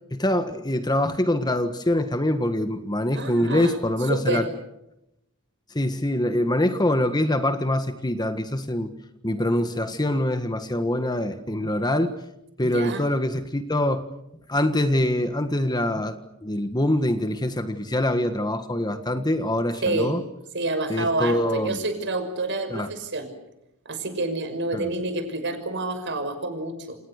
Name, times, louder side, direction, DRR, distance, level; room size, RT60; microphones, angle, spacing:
voice 1, 0.1-4.5 5.7-8.9 9.2-12.2 12.6-14.0 14.5-20.2 20.9-21.8 22.7-22.9 24.7-24.9, left 1 dB, 20° left, 9 dB, 1.5 m, -24 dB
voice 2, 3.1-3.8 4.1-4.5 12.7-13.0 19.8-20.1 20.5-23.3 23.9-27.0, right 2 dB, 55° right, 7 dB, 6.2 m, -28 dB
29.0 x 28.0 x 6.6 m, 0.86 s
head